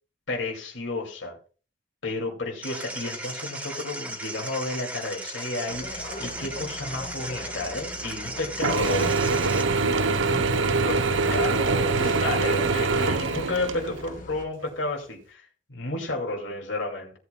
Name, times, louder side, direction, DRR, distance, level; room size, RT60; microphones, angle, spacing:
voice 1, 0.3-1.4 2.0-9.4 10.3-17.1, left 2 dB, 85° left, 2.6 m, -32 dB
sound 1, 2.6-9.6, right 1 dB, 10° right, 1.5 m, -36 dB
sound 2, 5.7-14.5, left 2 dB, 45° left, 1.6 m, -41 dB
Mechanisms / Drill, 8.6-14.1, right 4 dB, 85° right, 0.8 m, -24 dB
16.5 x 8.4 x 2.3 m
head